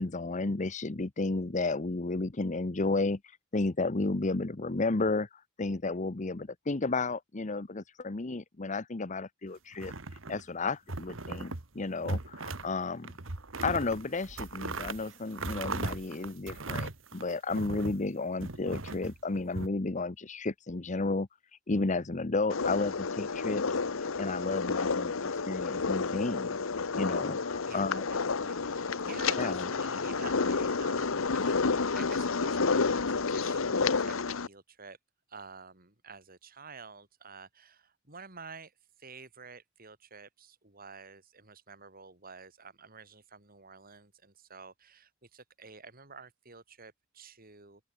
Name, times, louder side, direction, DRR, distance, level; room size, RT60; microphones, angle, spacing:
voice 1, 0.0-3.2 3.5-5.3 5.6-9.9 10.3-13.1 13.6-21.3 21.7-23.6 24.2-26.6 26.9-28.0 29.4-29.7, left 3 dB, 35° left, 0.9 m, -32 dB
sound 1, 9.7-10.5 10.9-11.7 12.0-12.7 13.0-18.0 18.4-19.7, right 3 dB, 70° right, 1.8 m, -38 dB
sound 2, 22.5-34.5, left 4 dB, 80° left, 1.0 m, -30 dB
voice 2, 27.7-34.2 34.5-35.0 35.3-38.7 39.0-47.8, right 4 dB, 45° right, 5.6 m, -50 dB
open air
head